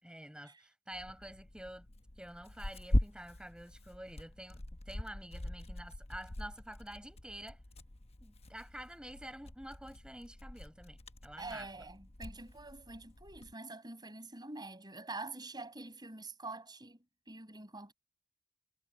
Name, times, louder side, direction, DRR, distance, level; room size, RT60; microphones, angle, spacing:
voice 1, 0.0-1.9 2.2-7.6 8.2-11.7, right 1 dB, 5° right, 6.0 m, -48 dB
Tearing, 0.9-13.5, left 1 dB, 35° left, 1.0 m, -41 dB
voice 2, 11.4-17.9, right 3 dB, 20° right, 7.4 m, -46 dB
head